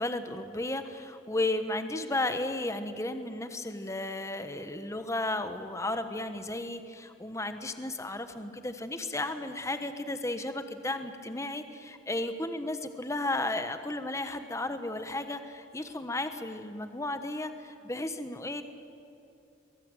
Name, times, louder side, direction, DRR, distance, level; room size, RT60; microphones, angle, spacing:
voice 1, 0.0-18.6, left 2 dB, 15° left, 9 dB, 1.2 m, -34 dB
23.0 x 21.5 x 9.0 m, 2.7 s
head